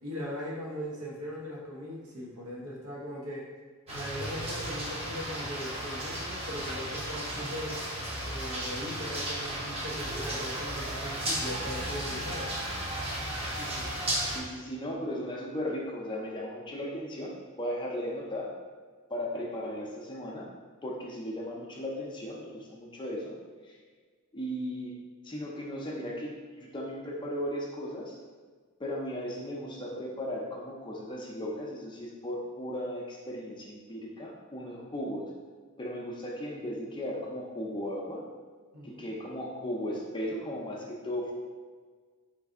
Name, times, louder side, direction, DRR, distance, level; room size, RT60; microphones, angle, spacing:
voice 1, 0.0-3.5 3.9-7.8 8.2-12.5 38.7-39.1, left 1 dB, 80° right, -4 dB, 0.9 m, -39 dB
sound 1, 3.9-14.4, right 1 dB, 30° right, 0.7 m, -34 dB
voice 2, 13.6-13.9 14.2-18.5 19.1-20.5 20.8-23.4 23.6-23.7 24.3-24.9 25.2-28.2 28.8-35.3 35.8-38.2 38.8-41.3, equal, 20° left, -2 dB, 0.5 m, -36 dB
3.2 x 2.6 x 3.5 m, 1.5 s
head